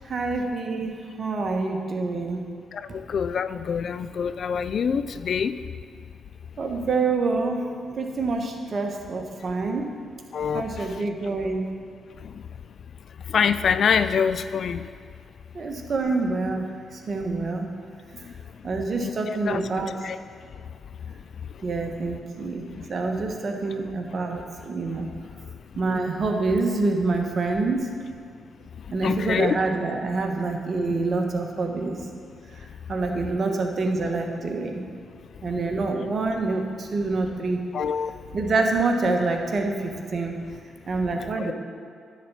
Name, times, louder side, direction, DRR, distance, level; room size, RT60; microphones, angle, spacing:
voice 1, 0.0-2.4 6.6-7.6 7.9-9.9 10.5-11.7 15.5-17.6 18.6-19.9 21.6-25.1 25.8-27.9 28.9-32.0 32.9-34.8 35.4-37.6 38.3-40.4 40.9-41.5, right 3 dB, 50° right, 3 dB, 1.2 m, -26 dB
voice 2, 3.1-5.5 10.3-10.6 13.3-14.8 19.0-19.1 19.5-19.6 20.0-20.2 29.0-29.6 37.7-38.1 41.4-41.5, left 7 dB, 60° left, 12 dB, 0.3 m, -24 dB
10.0 x 4.2 x 7.1 m, 2.2 s
supercardioid pair, 50°, 0 cm